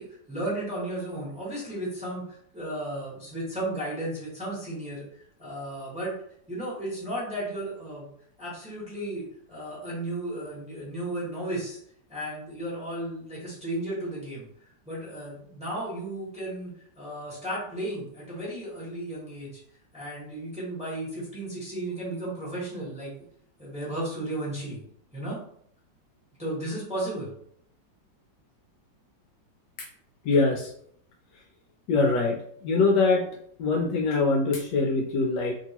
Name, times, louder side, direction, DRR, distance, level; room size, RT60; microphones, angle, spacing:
voice 1, 0.0-5.0 5.4-6.1 6.5-8.0 8.4-11.8 12.1-14.5 14.8-19.6 19.9-23.1 23.6-24.8 25.1-25.4 26.4-27.3, right 1 dB, 5° right, -7 dB, 1.1 m, -34 dB
voice 2, 30.3-30.7 31.9-33.2 33.6-35.5, left 3 dB, 75° left, 0 dB, 1.1 m, -23 dB
2.9 x 2.8 x 2.9 m, 0.66 s
omnidirectional pair, 2.0 m